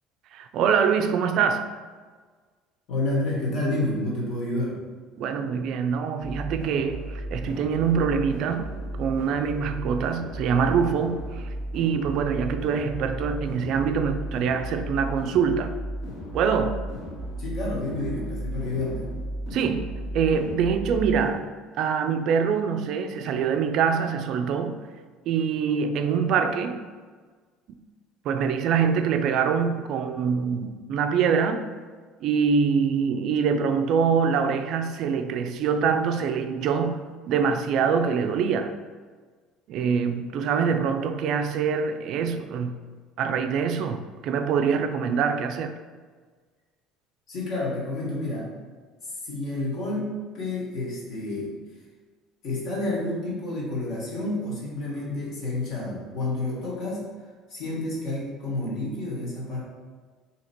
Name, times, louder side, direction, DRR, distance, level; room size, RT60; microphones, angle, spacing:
voice 1, 0.3-1.7 5.2-8.7 9.0-15.8 16.3-16.8 19.5-21.5 21.8-24.8 25.3-26.8 28.2-31.6 32.2-38.7 39.7-42.8 43.2-45.8, right 6 dB, 50° right, 0.3 m, -24 dB
voice 2, 2.9-4.8 17.4-19.1 47.3-48.5 49.2-51.5 52.4-57.1 57.5-59.6, left 2 dB, 45° left, 1.4 m, -29 dB
sound 1, 6.2-21.3, right 1 dB, 65° left, 1.2 m, -35 dB
4.2 x 2.9 x 4.3 m
cardioid pair, 160°, 0 cm